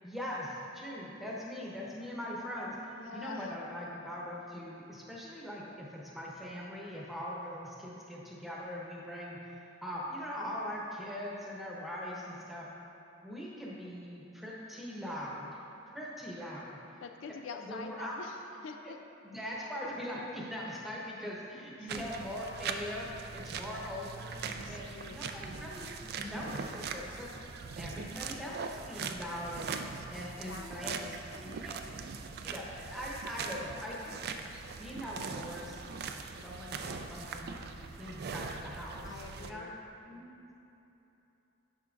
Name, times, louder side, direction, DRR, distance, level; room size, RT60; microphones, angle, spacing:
voice 1, 0.0-9.4 9.8-12.6 13.2-15.6 15.9-16.8 17.6-18.1 18.8-18.9 19.2-23.1 23.3-24.4 24.7-27.3 27.8-29.8 30.1-30.9 31.4-31.8 32.4-34.1 34.8-35.8 36.4-39.7 40.0-40.3, equal, ahead, -5 dB, 1.0 m, -41 dB
voice 2, 3.0-3.6 17.0-19.0 21.8-22.0 24.4-25.2 30.1-31.2 39.0-39.8, left 5 dB, 70° left, 5 dB, 0.4 m, -46 dB
sound 1, 21.9-39.5, right 5 dB, 50° right, 0.3 m, -41 dB
10.5 x 5.7 x 2.5 m, 3.0 s
head